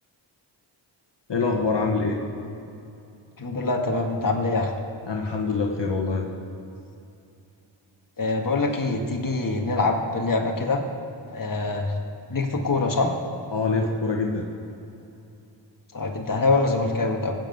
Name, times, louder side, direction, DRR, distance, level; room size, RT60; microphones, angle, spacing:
voice 1, 1.3-2.2 5.1-6.3 13.5-14.4, left 4 dB, 55° left, 0 dB, 2.0 m, -25 dB
voice 2, 3.4-4.7 8.2-10.8 11.3-12.0 12.3-13.1 15.9-17.3, left 3 dB, 40° left, 1 dB, 2.0 m, -24 dB
17.0 x 7.8 x 8.1 m, 2.7 s
cardioid pair, 40°, 49 cm